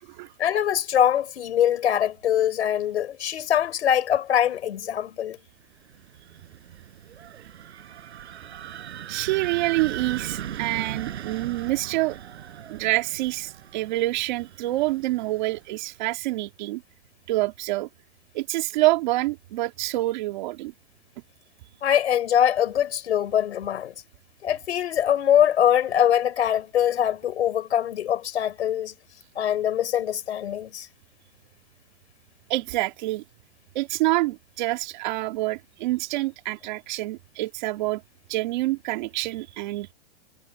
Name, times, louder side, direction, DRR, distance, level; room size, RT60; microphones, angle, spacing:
voice 1, 0.4-5.4 21.8-23.9 24.4-28.9 29.3-30.9, left 10 dB, 80° left, 4.5 m, -23 dB
sound 1, 5.9-15.7, right 10 dB, 75° right, 6.9 m, -38 dB
voice 2, 9.1-12.2 12.7-16.8 17.3-17.9 18.3-20.7 32.5-33.2 33.7-38.0 38.3-39.9, right 19 dB, 45° right, 2.6 m, -27 dB
hypercardioid pair, 165°, 33 cm